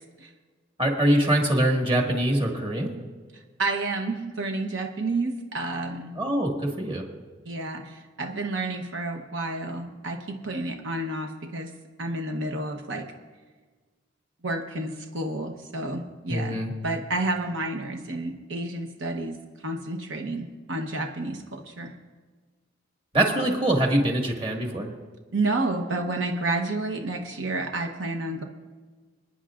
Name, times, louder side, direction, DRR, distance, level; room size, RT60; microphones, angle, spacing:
voice 1, 0.8-2.9 6.2-7.0 16.3-16.7 23.1-24.9, right 1 dB, 30° right, 0 dB, 1.8 m, -23 dB
voice 2, 3.6-6.1 7.4-11.7 12.0-13.1 14.4-16.6 16.8-19.4 19.6-21.9 25.3-28.4, right 2 dB, 90° right, 4 dB, 1.0 m, -30 dB
27.0 x 10.0 x 2.5 m, 1.4 s
head